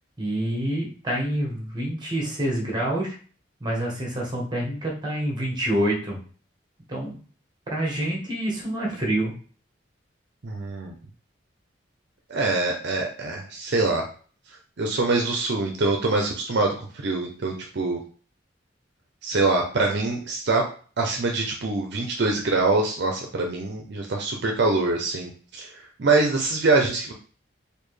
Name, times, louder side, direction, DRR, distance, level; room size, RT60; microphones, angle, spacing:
voice 1, 0.2-3.2 3.6-6.2 6.9-7.2 7.7-9.3, right 1 dB, 20° right, -1 dB, 1.2 m, -27 dB
voice 2, 10.4-10.9 12.3-14.0 14.8-16.7 17.0-18.0 19.2-20.6 21.0-27.1, right 3 dB, 60° right, 1 dB, 0.6 m, -24 dB
4.3 x 2.7 x 3.2 m, 0.41 s
head